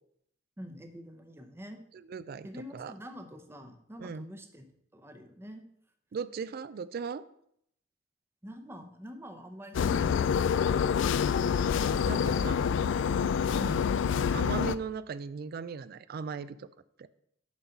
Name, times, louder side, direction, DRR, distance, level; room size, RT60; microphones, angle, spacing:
voice 1, 0.6-1.8 2.4-4.7 4.9-5.6 8.4-11.0 12.2-13.1 13.6-13.9, equal, 15° right, 6 dB, 0.7 m, -46 dB
voice 2, 1.9-2.5 2.7-2.9 4.0-4.3 6.1-7.3 11.9-12.6 13.7-13.9 14.3-16.7 17.0-17.1, right 5 dB, 50° right, 16 dB, 0.3 m, -38 dB
sound 1, 9.7-14.7, left 7 dB, 70° left, 0.3 m, -27 dB
7.3 x 4.0 x 5.8 m, 0.71 s
head